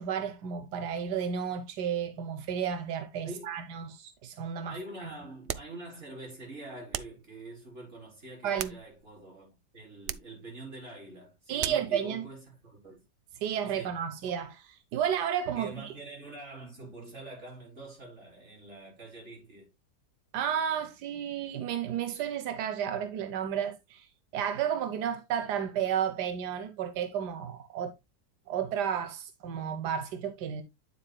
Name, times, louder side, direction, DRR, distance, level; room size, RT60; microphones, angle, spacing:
voice 1, 0.0-4.7 8.4-8.7 11.5-12.2 13.4-15.9 20.3-27.9 28.5-30.6, right 8 dB, 90° right, 1.4 m, -32 dB
voice 2, 3.2-3.6 4.7-13.0 13.7-14.0 15.5-19.7, right 2 dB, 45° right, 4.4 m, -45 dB
sound 1, 5.5-5.8 6.9-7.2 8.3-9.2 10.0-10.4 11.6-12.0, right 11 dB, 70° right, 0.6 m, -37 dB
9.2 x 7.8 x 2.2 m
omnidirectional pair, 1.7 m